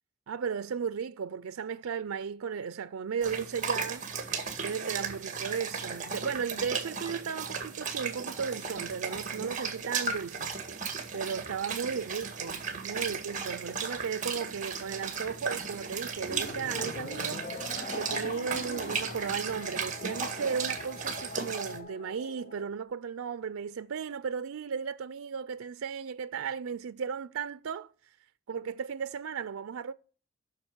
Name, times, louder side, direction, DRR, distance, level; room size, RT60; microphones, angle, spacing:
voice 1, 0.3-4.1 4.6-10.5 11.1-27.9 28.5-29.9, right 6 dB, 90° right, 0.4 m, -35 dB
sound 1, 3.2-21.8, right 5 dB, 35° right, 1.8 m, -36 dB
sound 2, 16.2-22.7, left 3 dB, 40° left, 0.7 m, -43 dB
8.7 x 6.3 x 8.0 m
head